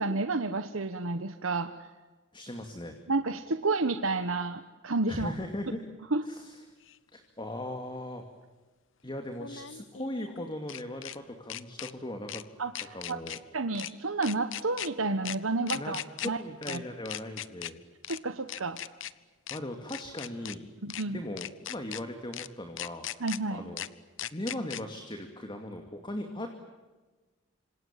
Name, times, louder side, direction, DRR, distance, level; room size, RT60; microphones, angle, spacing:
voice 1, 0.0-1.9 3.1-5.3 6.1-6.2 12.6-13.2 13.5-16.4 16.7-16.8 18.1-18.8 20.8-21.2 23.2-23.6, right 3 dB, 90° right, 9 dB, 1.3 m, -30 dB
voice 2, 2.3-3.0 5.1-5.8 6.2-6.7 7.1-8.2 9.0-12.4 12.9-13.4 15.7-15.9 16.2-17.8 19.5-20.7 21.0-23.9 24.3-26.5, left 1 dB, 25° left, 5 dB, 2.4 m, -38 dB
sound 1, 6.9-7.0 9.3-11.2 11.5-11.9 12.3-12.4 12.7-13.4 13.7-13.9 14.2-14.9 15.2-15.4 15.7-16.3 16.6-16.8 17.0-17.7 18.0-18.2 18.5-19.1 19.5-19.6 19.9-20.5 20.9-21.0 21.4-22.0 22.3-22.5 22.8-23.4 23.8-23.9 24.2-24.8, left 11 dB, 70° left, 1.0 m, -38 dB
27.0 x 27.0 x 7.5 m, 1.3 s
head